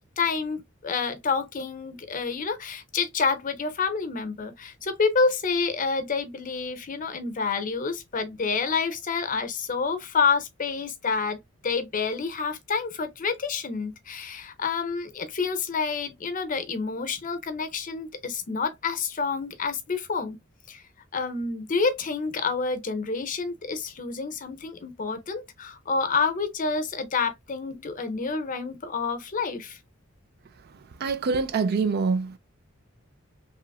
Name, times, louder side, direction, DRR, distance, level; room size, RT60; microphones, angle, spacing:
voice 1, 0.2-20.4 20.7-20.8 21.1-29.8, left 4 dB, 40° left, 0.6 m, -28 dB
voice 2, 31.0-32.4, right 4 dB, 50° right, 0.4 m, -25 dB
3.0 x 2.4 x 2.3 m
head